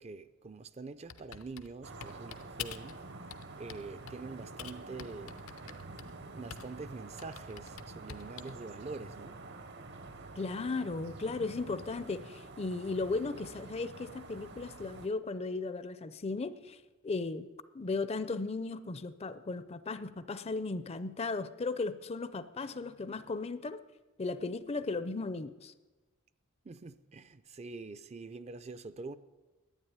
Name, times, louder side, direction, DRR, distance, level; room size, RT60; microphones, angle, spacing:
voice 1, 0.0-3.0 3.6-5.4 6.0-9.4 26.6-29.2, right 3 dB, 30° right, 0.5 m, -45 dB
Typing, 1.1-3.0 3.3-4.2 4.6-6.8 7.2-8.6, left 8 dB, 80° left, 0.7 m, -46 dB
sound 1, 1.8-15.1, right 3 dB, 55° right, 0.9 m, -48 dB
voice 2, 10.4-16.8 17.0-17.5 17.7-23.8 24.2-25.7, left 3 dB, 30° left, 0.5 m, -36 dB
Guitar, 22.6-23.7, equal, 75° right, 2.6 m, -64 dB
11.0 x 9.5 x 9.7 m
head